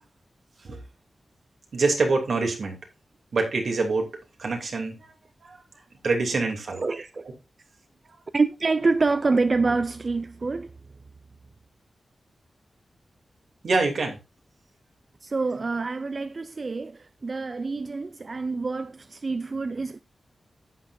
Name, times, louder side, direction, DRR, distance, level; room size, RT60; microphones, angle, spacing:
voice 1, 1.7-2.8 3.3-4.1 4.4-5.1 5.4-5.6 6.0-6.8 13.6-14.2, right 3 dB, 65° right, 2.8 m, -25 dB
voice 2, 6.7-7.3 8.3-10.7 15.2-20.0, right 3 dB, 35° right, 0.4 m, -26 dB
11.0 x 9.1 x 2.6 m
wide cardioid pair, 160°, 0 cm